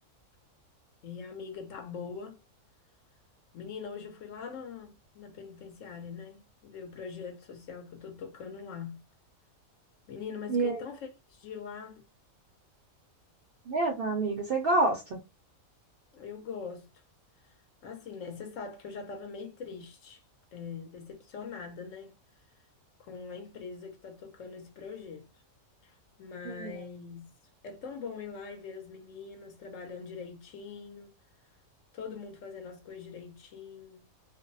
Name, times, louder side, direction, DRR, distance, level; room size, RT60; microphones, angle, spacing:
voice 1, 1.0-2.4 3.5-9.0 10.1-12.0 16.1-16.9 17.4-17.5 17.8-20.2 20.5-22.2 23.0-25.3 25.8-27.3 27.6-31.1 31.9-34.0, left 5 dB, 70° left, 0.9 m, -42 dB
voice 2, 10.5-10.8 13.7-15.2 26.4-26.8, right 2 dB, 65° right, 0.5 m, -28 dB
2.5 x 2.0 x 2.4 m
omnidirectional pair, 1.5 m